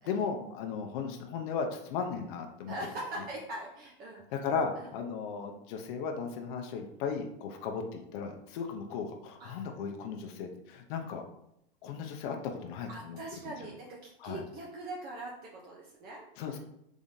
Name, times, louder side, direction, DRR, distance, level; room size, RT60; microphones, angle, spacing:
voice 1, 0.1-2.7 4.3-11.2 11.8-13.4 14.2-14.4 16.4-16.6, left 5 dB, 60° left, 4 dB, 0.6 m, -36 dB
voice 2, 2.7-4.2 4.8-4.9 9.4-9.7 12.9-16.6, right 1 dB, 30° right, -3 dB, 0.6 m, -42 dB
3.6 x 3.5 x 2.6 m, 0.77 s
supercardioid pair, 135°, 29 cm